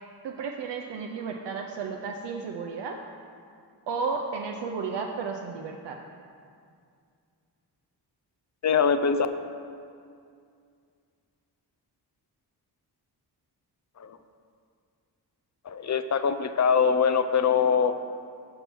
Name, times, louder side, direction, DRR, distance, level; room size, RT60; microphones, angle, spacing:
voice 1, 0.2-2.9 3.9-6.0, right 5 dB, 75° right, 1 dB, 0.6 m, -33 dB
voice 2, 8.6-9.3 14.0-14.2 15.7-18.0, left 6 dB, 40° left, 10 dB, 0.5 m, -23 dB
5.7 x 5.4 x 6.0 m, 2.3 s
cardioid pair, 55°, 43 cm